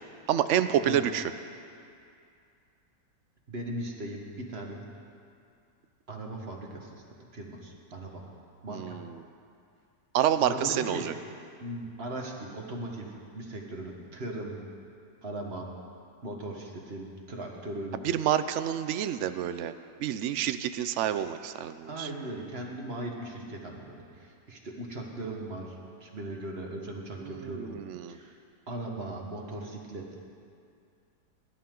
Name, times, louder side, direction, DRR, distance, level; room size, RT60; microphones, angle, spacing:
voice 1, 0.3-1.2 8.7-9.2 10.1-11.1 18.0-19.7 20.0-22.1 27.2-28.2, right 10 dB, 70° right, 11 dB, 0.7 m, -28 dB
voice 2, 3.5-4.8 6.1-8.3 8.6-9.0 10.4-11.1 11.6-14.7 15.2-15.8 16.2-18.0 21.9-27.8 28.1-28.4 28.7-30.2, right 1 dB, 40° right, 0 dB, 1.7 m, -38 dB
21.5 x 12.0 x 3.8 m, 2.4 s
omnidirectional pair, 1.8 m